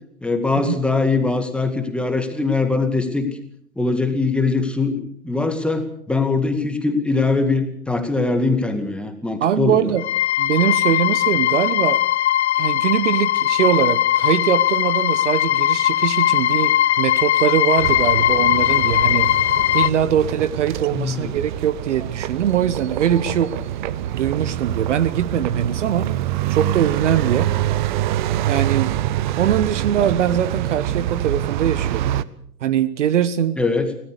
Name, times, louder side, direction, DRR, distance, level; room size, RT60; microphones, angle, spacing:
voice 1, 0.2-3.3 3.8-9.9 20.9-21.3 33.6-33.9, left 3 dB, ahead, 6 dB, 2.1 m, -22 dB
voice 2, 9.4-10.1 10.4-12.0 12.6-19.3 19.7-23.5 24.1-26.1 26.5-27.8 28.4-28.9 29.4-32.1 32.6-33.6, right 9 dB, 50° right, 16 dB, 1.1 m, -22 dB
sound 1, 10.0-19.9, left 12 dB, 45° left, 0.8 m, -19 dB
sound 2, 17.8-32.2, right 12 dB, 30° right, 0.8 m, -25 dB
25.0 x 18.0 x 6.6 m, 0.67 s
figure-of-eight pair, 120°, 47 cm